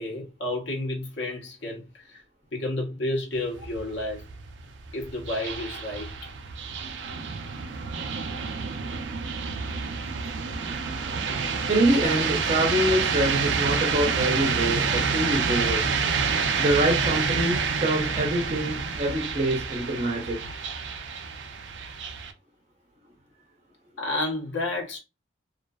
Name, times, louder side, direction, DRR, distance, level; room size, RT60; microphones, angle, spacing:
voice 1, 0.0-2.2 2.5-4.2 4.9-6.1 24.0-25.0, left 2 dB, 75° left, 1.0 m, -31 dB
sound 1, 3.3-22.3, right 5 dB, 70° right, 0.4 m, -28 dB
voice 2, 11.7-15.8 16.6-20.4, right 1 dB, 35° right, 0.7 m, -25 dB
2.5 x 2.4 x 2.3 m
head